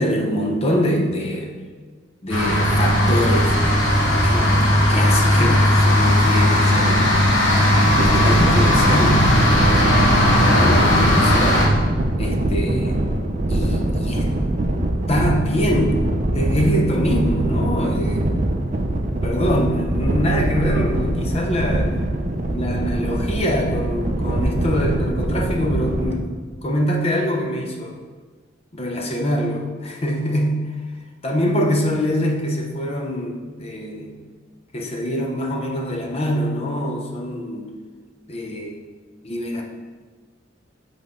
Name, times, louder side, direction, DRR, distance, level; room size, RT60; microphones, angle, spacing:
voice 1, 0.0-1.6 2.2-3.5 4.1-7.2 8.0-9.3 10.4-11.7 12.2-13.0 13.5-14.3 15.1-16.0 16.3-18.4 19.2-21.9 22.5-28.0 28.7-30.6 31.2-34.1 34.7-37.7 38.3-38.8 39.2-39.6, equal, 35° left, 2 dB, 0.7 m, -24 dB
sound 1, 2.3-11.7, left 1 dB, 90° left, 1.3 m, -16 dB
sound 2, 7.9-26.2, right 1 dB, 40° right, 0.5 m, -23 dB
7.5 x 3.9 x 3.6 m, 1.4 s
head